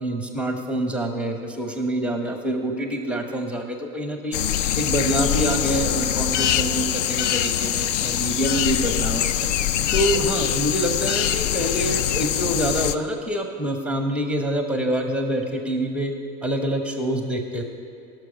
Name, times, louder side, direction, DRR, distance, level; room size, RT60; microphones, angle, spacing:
voice 1, 0.0-4.4 4.7-9.5 9.9-16.1 16.4-17.6, right 1 dB, 5° right, 4 dB, 0.9 m, -26 dB
sound 1, 4.3-12.9, left 10 dB, 60° left, 0.5 m, -23 dB
17.5 x 6.3 x 5.0 m, 2.5 s
figure-of-eight pair, 90°, 43 cm